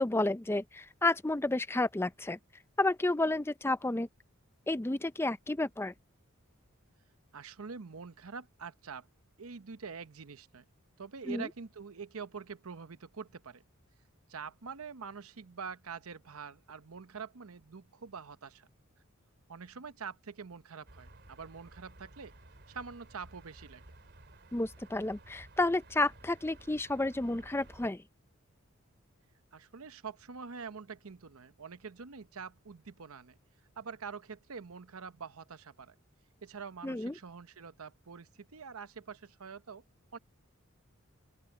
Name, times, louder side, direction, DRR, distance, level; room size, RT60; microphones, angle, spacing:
voice 1, 0.0-2.4 2.8-4.1 4.7-5.9 11.3-11.5 24.5-28.0 36.8-37.1, left 2 dB, 10° left, 0.5 m, -31 dB
voice 2, 7.3-9.1 9.4-10.6 11.0-13.6 14.3-18.7 19.5-22.3 22.7-23.8 29.5-33.4 33.8-36.0 36.4-39.8 40.1-40.2, right 5 dB, 85° right, 0.8 m, -45 dB
sound 1, 20.9-27.9, right 2 dB, 55° right, 3.3 m, -55 dB
open air
head